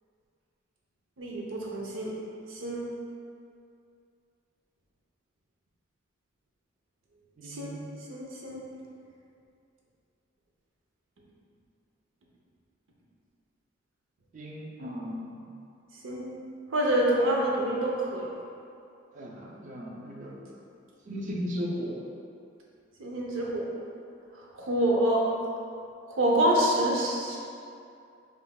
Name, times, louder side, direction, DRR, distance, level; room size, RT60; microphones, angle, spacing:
voice 1, 1.2-2.1 2.5-2.8 7.4-7.8 8.1-8.6 16.0-16.3 16.7-18.3 23.0-23.7 24.3-25.2 26.2-27.4, right 1 dB, 90° right, -3 dB, 0.7 m, -27 dB
voice 2, 7.4-8.0 14.3-15.4 19.1-20.6 21.1-22.1, equal, 40° right, -2 dB, 0.5 m, -37 dB
5.3 x 2.6 x 2.3 m, 2.5 s
head